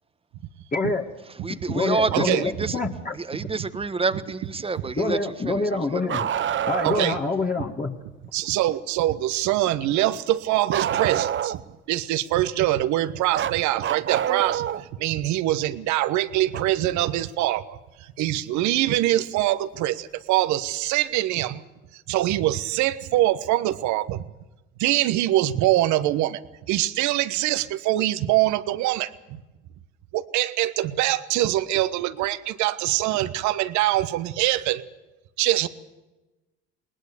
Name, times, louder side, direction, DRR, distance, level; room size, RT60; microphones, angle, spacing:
voice 1, 0.7-1.0 1.7-3.1 5.0-6.3 6.7-7.9, left 3 dB, 30° left, 0 dB, 2.2 m, -26 dB
voice 2, 1.4-2.8 3.1-5.2 5.4-6.0, right 4 dB, 20° right, 11 dB, 1.3 m, -28 dB
voice 3, 2.1-2.8 6.8-7.2 8.3-11.6 11.9-14.7 15.0-17.8 18.2-21.6 22.1-24.2 24.8-26.4 26.7-29.4 30.1-34.9 35.4-35.7, right 15 dB, 70° right, 13 dB, 1.2 m, -24 dB
Bark, 6.1-7.2 10.7-11.7 13.3-14.9 16.5-16.6 18.5-18.6 19.7-19.8, right 10 dB, 40° right, 0.8 m, -27 dB
20.5 x 20.0 x 7.0 m, 1.1 s
hypercardioid pair, 60°, 30 cm